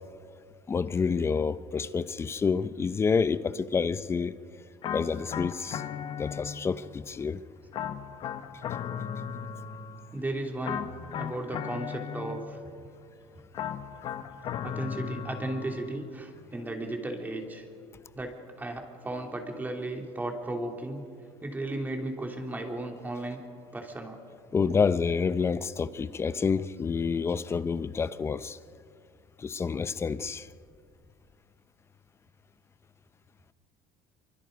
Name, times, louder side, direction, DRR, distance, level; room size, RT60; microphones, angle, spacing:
voice 1, 0.7-4.3 4.9-5.8 6.2-7.4 24.5-28.6 29.4-30.5, left 5 dB, 20° left, 0.7 m, -28 dB
sound 1, 4.8-6.9 7.7-10.1 10.6-12.7 13.5-15.9, left 8 dB, 45° left, 1.2 m, -36 dB
voice 2, 10.1-10.9 11.1-12.6 14.6-17.6 18.1-21.1 21.4-23.4 23.7-24.2, right 1 dB, 15° right, 2.8 m, -35 dB
26.0 x 24.0 x 5.3 m
cardioid pair, 130°, 11 cm